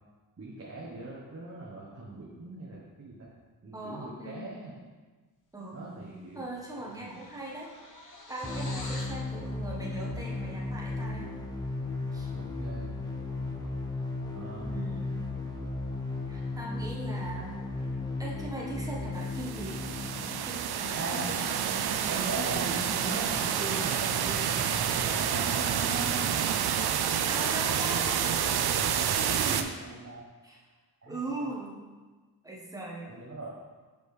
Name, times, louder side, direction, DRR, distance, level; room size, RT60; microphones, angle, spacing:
voice 1, 0.4-3.3 3.6-4.9 5.7-6.4 6.7-7.1 12.3-12.9 14.3-14.7 20.9-21.3 22.1-24.5 25.1-26.7 27.7-28.1 29.8-30.3 31.0-31.5 33.1-33.5, right 2 dB, 40° right, -6 dB, 1.1 m, -40 dB
voice 2, 3.7-4.5 5.5-5.9 6.3-7.7 8.0-11.3 12.1-12.3 13.5-13.6 14.6-15.3 16.3-17.6 18.2-19.8 20.4-21.6 27.3-28.4 29.3-29.8 30.4-30.6 31.1-31.8 32.4-33.1, right 2 dB, 10° right, -4 dB, 1.3 m, -40 dB
sound 1, 6.0-6.2 6.5-9.2, left 2 dB, 50° left, 1.1 m, -46 dB
sound 2, 8.4-20.4, left 2 dB, 10° left, 0.8 m, -35 dB
sound 3, 19.3-29.6, right 8 dB, 75° right, 0.5 m, -28 dB
6.2 x 5.2 x 3.3 m, 1.4 s
wide cardioid pair, 95°, 39 cm